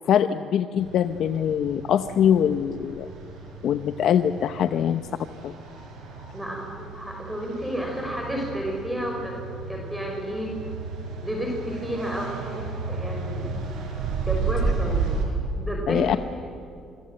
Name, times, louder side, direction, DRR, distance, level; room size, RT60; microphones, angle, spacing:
voice 1, 0.1-3.1 3.6-5.0 5.4-5.5 15.9-16.2, left 9 dB, 65° left, 10 dB, 0.7 m, -23 dB
sound 1, 0.8-15.2, right 4 dB, 75° right, 6.2 m, -33 dB
voice 2, 6.3-9.3 9.7-10.5 11.2-13.5 14.3-15.1 15.5-16.0 16.3-16.4, equal, 5° right, -1 dB, 5.3 m, -31 dB
25.5 x 23.5 x 7.7 m, 2.5 s
cardioid pair, 95°, 0 cm